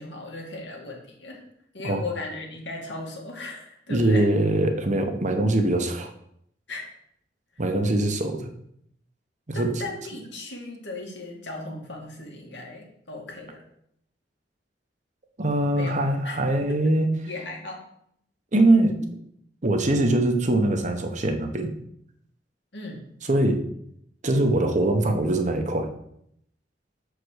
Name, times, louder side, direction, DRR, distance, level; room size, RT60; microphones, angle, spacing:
voice 1, 0.0-1.4 1.7-4.3 6.7-6.9 7.5-7.6 9.5-13.6 15.7-16.0 16.2-16.4 16.7-16.9 17.3-17.8 22.7-23.1, left 2 dB, 75° left, 0 dB, 2.2 m, -37 dB
voice 2, 3.9-6.1 7.6-8.5 9.5-9.7 15.4-17.1 18.5-19.1 19.6-21.7 23.2-23.6 24.2-25.9, right 1 dB, 45° right, 5 dB, 1.0 m, -22 dB
6.7 x 5.0 x 6.4 m, 0.72 s
head